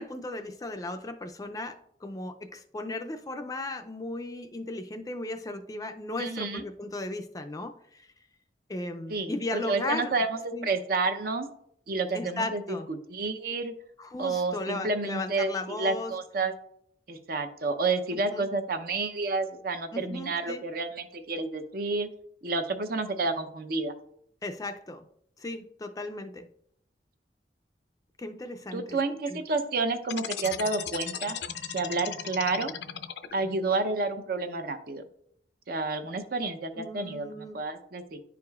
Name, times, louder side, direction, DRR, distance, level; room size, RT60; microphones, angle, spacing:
voice 1, 0.0-8.1 8.7-10.1 10.5-10.7 12.1-12.9 14.0-16.1 18.3-18.5 19.9-20.6 24.4-25.0 25.4-26.5 28.2-29.0 29.3-29.4 36.7-37.6, left 2 dB, 20° left, 7 dB, 0.4 m, -36 dB
voice 2, 6.2-6.6 9.1-11.5 11.9-13.7 14.2-16.5 17.1-22.1 22.4-23.9 28.7-31.4 31.7-32.7 33.3-35.0 35.7-38.2, right 3 dB, 55° right, 8 dB, 0.7 m, -30 dB
sound 1, 30.0-33.6, left 8 dB, 75° left, 0.5 m, -36 dB
10.5 x 4.8 x 2.4 m, 0.69 s
head